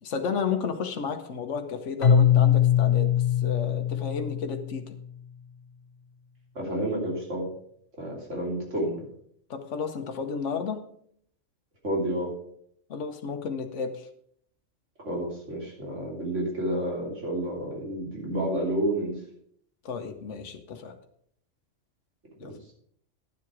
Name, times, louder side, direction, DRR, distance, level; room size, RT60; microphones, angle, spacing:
voice 1, 0.0-3.1 3.4-5.0 9.5-10.9 12.9-14.1 19.8-21.0 22.4-22.5, left 5 dB, 70° left, 6 dB, 1.3 m, -32 dB
Keyboard (musical), 2.0-5.0, left 9 dB, 50° left, 1.0 m, -22 dB
voice 2, 6.5-7.5 8.0-9.0 11.8-12.3 15.0-19.1, right 1 dB, 70° right, -2 dB, 3.3 m, -30 dB
11.0 x 7.5 x 4.8 m, 0.66 s
omnidirectional pair, 1.3 m